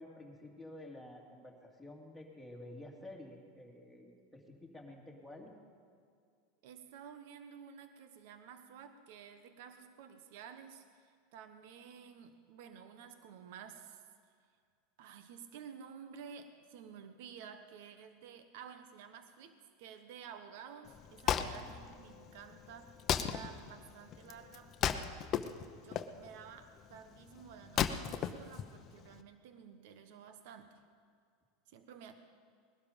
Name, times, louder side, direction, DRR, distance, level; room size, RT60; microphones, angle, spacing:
voice 1, 0.0-5.5 21.4-21.7, left 1 dB, ahead, -3 dB, 2.6 m, -51 dB
voice 2, 6.6-14.0 15.0-25.3 25.8-30.8 31.7-32.1, right 7 dB, 70° right, 9 dB, 1.1 m, -52 dB
Wood, 20.9-29.2, left 9 dB, 35° left, 0.8 m, -37 dB
20.0 x 12.5 x 5.3 m, 2.2 s
supercardioid pair, 130°, 0 cm